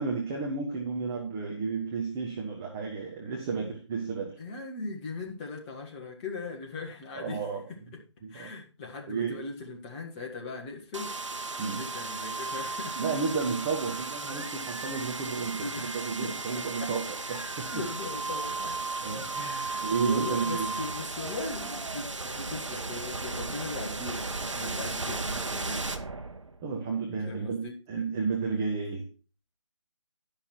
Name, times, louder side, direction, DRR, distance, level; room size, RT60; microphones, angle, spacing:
voice 1, 0.0-4.4 7.1-7.6 8.2-8.5 9.1-9.5 11.6-11.8 13.0-17.8 19.0-20.8 24.6-24.9 26.6-29.1, right 5 dB, 5° right, 1 dB, 0.3 m, -32 dB
voice 2, 4.4-7.4 8.3-13.0 15.6-16.9 17.3-18.8 19.4-25.9 27.2-27.7, left 3 dB, 20° left, 0 dB, 1.4 m, -39 dB
sound 1, 10.9-26.8, right 3 dB, 80° right, 0.9 m, -35 dB
10.5 x 5.7 x 4.5 m, 0.35 s
figure-of-eight pair, 150°, 16 cm